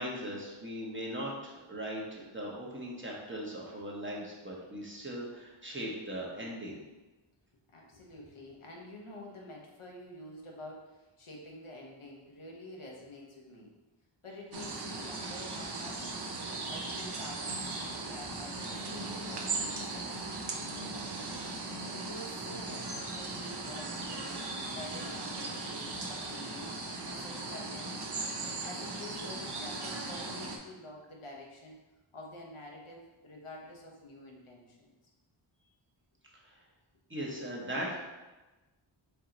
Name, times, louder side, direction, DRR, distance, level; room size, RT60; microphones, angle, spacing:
voice 1, 0.0-6.8 36.4-36.5 37.1-38.0, equal, 25° right, -3 dB, 1.0 m, -39 dB
voice 2, 7.7-13.7 14.2-16.2 16.7-20.1 20.6-21.4 21.9-26.7 27.0-28.3 28.6-31.8 32.1-34.9, left 1 dB, 80° left, -1 dB, 1.0 m, -48 dB
sound 1, 14.5-30.6, right 3 dB, 55° right, 0.6 m, -38 dB
4.5 x 2.8 x 3.9 m, 1.1 s
wide cardioid pair, 65°, 50 cm